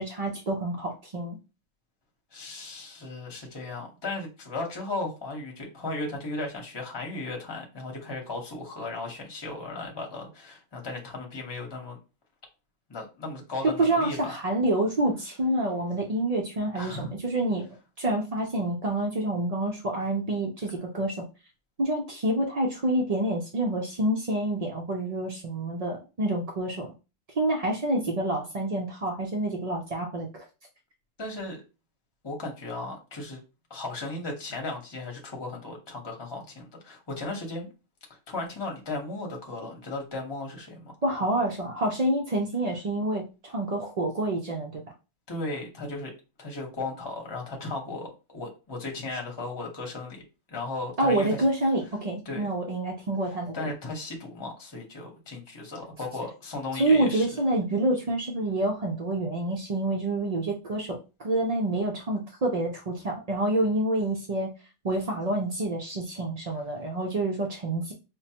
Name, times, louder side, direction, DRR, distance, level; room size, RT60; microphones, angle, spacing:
voice 1, 0.0-1.4 13.8-17.7 18.0-21.2 21.8-26.9 27.4-30.4 41.0-44.8 51.0-53.6 56.7-64.5 64.8-67.9, right 1 dB, 65° right, 1 dB, 0.3 m, -27 dB
voice 2, 2.3-12.0 12.9-14.3 16.7-17.1 31.2-31.6 32.2-33.4 33.7-37.7 38.3-40.9 45.3-46.1 46.4-50.2 50.5-51.4 52.3-52.5 53.5-57.4, left 2 dB, 20° left, 0 dB, 0.9 m, -36 dB
5.1 x 2.1 x 2.8 m, 0.30 s
omnidirectional pair, 1.5 m